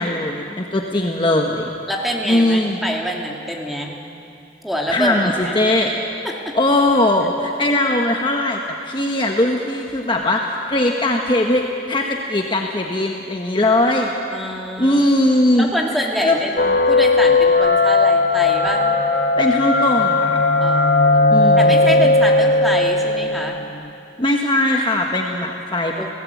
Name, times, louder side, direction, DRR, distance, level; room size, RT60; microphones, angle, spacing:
voice 1, 0.0-1.7 2.3-2.8 4.9-5.9 6.5-14.5 14.8-15.7 16.2-16.4 19.4-20.4 21.3-22.1 24.2-26.1, left 1 dB, 25° left, 1 dB, 1.4 m, -20 dB
voice 2, 1.9-4.0 4.6-5.6 6.2-6.5 14.3-15.1 15.5-18.9 20.6-23.6 26.0-26.1, equal, ahead, -1 dB, 2.8 m, -25 dB
sound 1, 16.6-23.9, left 3 dB, 55° left, 1.2 m, -16 dB
30.0 x 18.0 x 8.6 m, 2.6 s
head